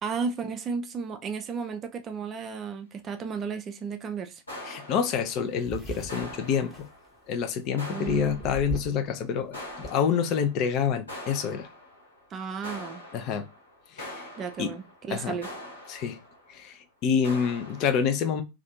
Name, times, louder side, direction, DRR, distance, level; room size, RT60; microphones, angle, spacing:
voice 1, 0.0-4.4 7.9-8.4 12.3-13.0 14.4-15.5, right 5 dB, 25° right, 0.4 m, -33 dB
sound 1, 4.5-5.7 6.1-7.4 7.8-9.0 9.5-10.7 11.1-12.2 12.6-16.6 17.2-17.9, left 1 dB, 75° left, 1.2 m, -43 dB
voice 2, 4.6-6.9 7.3-11.7 13.1-13.5 14.0-14.2 14.6-14.7 15.1-15.4 15.9-16.2 16.5-18.4, left 7 dB, 40° left, 0.4 m, -27 dB
sound 2, 4.9-5.0 5.2-7.6 8.0-9.1 9.4-9.9, right 3 dB, 5° left, 0.9 m, -39 dB
2.5 x 2.3 x 2.5 m
figure-of-eight pair, 90°, 0 cm